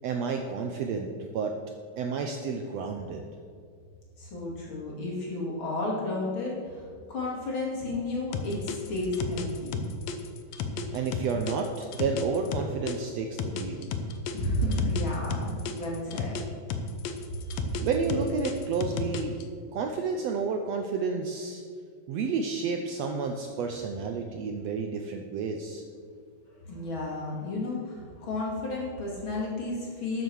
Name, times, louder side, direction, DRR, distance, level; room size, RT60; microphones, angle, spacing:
voice 1, 0.0-1.5 2.0-3.3 10.9-13.9 17.8-19.3 19.7-21.6 22.1-25.8, right 5 dB, 90° right, 4 dB, 1.5 m, -30 dB
voice 2, 4.2-9.8 14.3-16.3 26.6-30.2, left 2 dB, 40° left, -4 dB, 3.0 m, -32 dB
sound 1, 8.3-13.0 13.4-16.4 16.7-19.4, left 5 dB, 70° left, 1.6 m, -33 dB
13.0 x 7.1 x 6.2 m, 2.1 s
omnidirectional pair, 3.9 m